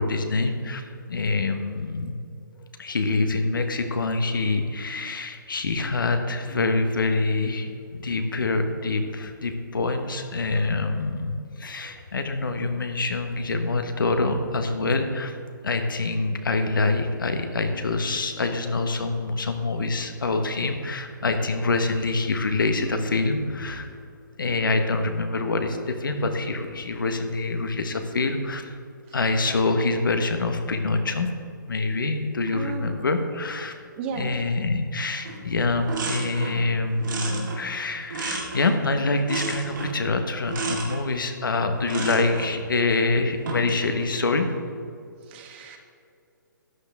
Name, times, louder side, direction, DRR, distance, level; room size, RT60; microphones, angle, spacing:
voice 1, 0.0-2.1 2.8-15.4 15.6-24.0 24.4-28.7 29.1-31.3 31.7-33.7 34.1-44.6, left 3 dB, 75° left, 6 dB, 1.3 m, -25 dB
voice 2, 32.5-32.9 34.0-34.4 45.3-45.8, right 6 dB, 30° right, 3 dB, 1.4 m, -34 dB
sound 1, 35.2-35.4 35.7-36.6 37.0-38.8 39.3-40.0 40.5-41.0 41.8-42.5 43.3-43.8, right 3 dB, 65° right, 2.5 m, -32 dB
13.0 x 9.5 x 3.6 m, 2.5 s
hypercardioid pair, 145°, 11 cm